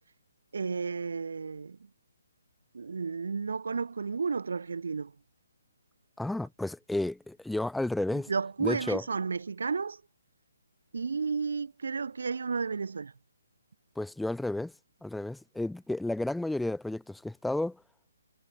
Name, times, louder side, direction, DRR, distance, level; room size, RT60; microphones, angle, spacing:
voice 1, 0.5-1.8 2.7-5.1 8.3-10.0 10.9-13.1, right 5 dB, 70° right, 2.7 m, -32 dB
voice 2, 6.2-8.3 8.6-9.0 14.0-14.7 15.0-17.8, left 2 dB, ahead, 1.2 m, -32 dB
hypercardioid pair, 170°, 0 cm